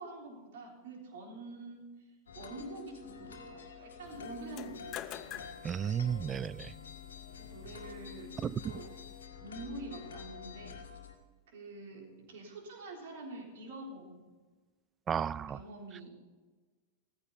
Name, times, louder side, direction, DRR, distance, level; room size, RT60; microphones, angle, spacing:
voice 1, 0.0-2.1 2.3-5.5 7.4-8.3 8.6-8.9 9.4-10.8 11.5-14.3 15.5-16.1, right 2 dB, 55° right, 0 dB, 3.8 m, -46 dB
sound 1, 2.3-11.1, left 6 dB, 65° left, 1.8 m, -48 dB
sound 2, 4.4-9.2, left 12 dB, 35° left, 0.6 m, -49 dB
voice 2, 5.6-6.7 8.4-8.6 15.1-15.6, right 8 dB, 25° right, 21 dB, 0.3 m, -33 dB
16.0 x 14.5 x 4.1 m, 1.3 s
figure-of-eight pair, 90°, 0 cm